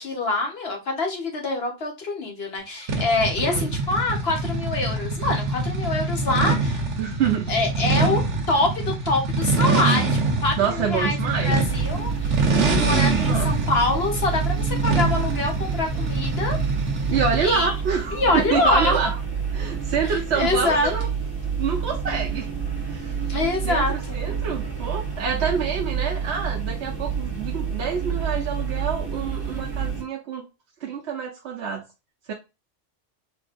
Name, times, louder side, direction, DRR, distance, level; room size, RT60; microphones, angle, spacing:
voice 1, 0.0-6.8 7.5-8.2 8.5-12.4 12.7-16.6 17.4-17.7 18.1-19.0 20.0-20.9 23.3-24.2, left 2 dB, 60° left, 1.4 m, -25 dB
sound 1, 2.9-17.6, right 3 dB, 85° right, 1.3 m, -25 dB
voice 2, 7.0-7.5 10.6-11.5 13.3-13.7 17.1-19.1 19.5-21.1 21.6-22.5 22.9-23.1 23.6-30.5 30.8-31.8 32.3-32.4, right 6 dB, 70° right, 1.0 m, -27 dB
sound 2, 11.7-30.0, right 7 dB, 20° right, 2.3 m, -28 dB
4.6 x 3.1 x 2.5 m
omnidirectional pair, 1.2 m